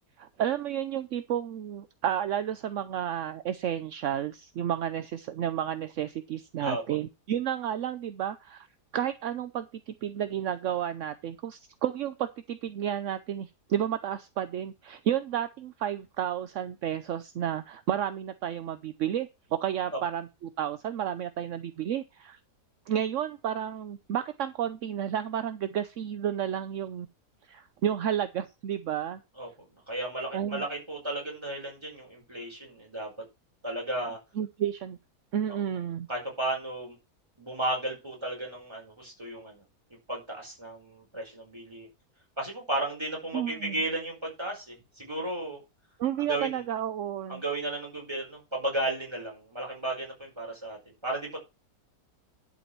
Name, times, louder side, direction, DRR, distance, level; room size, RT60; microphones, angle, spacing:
voice 1, 0.2-8.7 8.9-22.4 22.9-27.1 27.5-29.2 30.3-30.6 34.4-35.0 35.3-36.1 43.3-43.8 46.0-47.4, right 10 dB, 60° right, 11 dB, 0.9 m, -31 dB
voice 2, 6.6-7.0 19.9-20.0 29.4-29.5 29.9-33.2 33.6-34.2 35.5-35.6 36.1-36.9 37.4-39.6 40.1-41.9 42.4-45.6 46.2-46.6 47.3-51.4, right 1 dB, 15° right, -1 dB, 5.0 m, -34 dB
11.0 x 5.2 x 5.9 m, 0.26 s
omnidirectional pair, 1.8 m